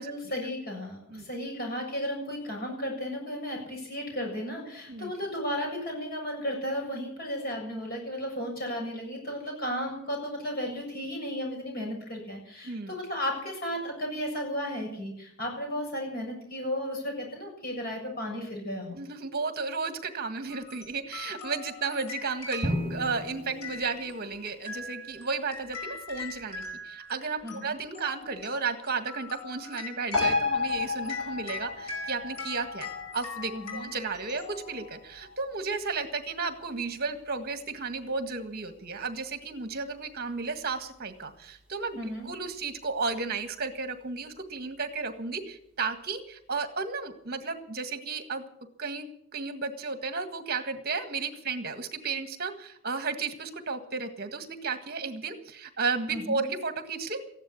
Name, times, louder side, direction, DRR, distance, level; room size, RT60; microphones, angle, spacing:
voice 1, 0.0-19.0 27.4-27.7 33.5-33.9 42.0-42.3 56.1-56.4, equal, 45° left, 1 dB, 7.3 m, -34 dB
voice 2, 18.9-42.0 42.2-48.4 48.8-57.2, right 4 dB, 45° right, 8 dB, 1.7 m, -33 dB
sound 1, 20.5-35.2, left 3 dB, 90° left, 4.7 m, -42 dB
Drum, 22.6-24.6, equal, 25° right, 1.7 m, -34 dB
sound 2, 30.1-37.1 37.4-37.5, left 4 dB, 5° right, 3.7 m, -33 dB
15.0 x 11.0 x 8.4 m, 0.71 s
head